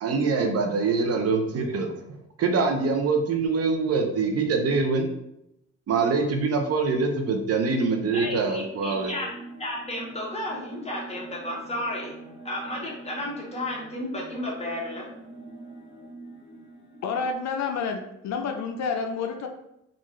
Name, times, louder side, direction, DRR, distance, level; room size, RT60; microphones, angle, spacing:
voice 1, 0.0-1.9 2.4-5.1 5.9-9.1, right 4 dB, 55° right, 4 dB, 0.6 m, -24 dB
voice 2, 8.1-9.3 9.6-12.2 12.4-15.1, left 1 dB, 20° left, -3 dB, 1.2 m, -33 dB
pachinko-xcorr, 8.2-17.3, right 2 dB, 40° left, 0.9 m, -44 dB
voice 3, 17.0-19.5, left 5 dB, 65° left, 5 dB, 0.5 m, -29 dB
3.6 x 2.5 x 3.1 m, 0.81 s
cardioid pair, 90°, 30 cm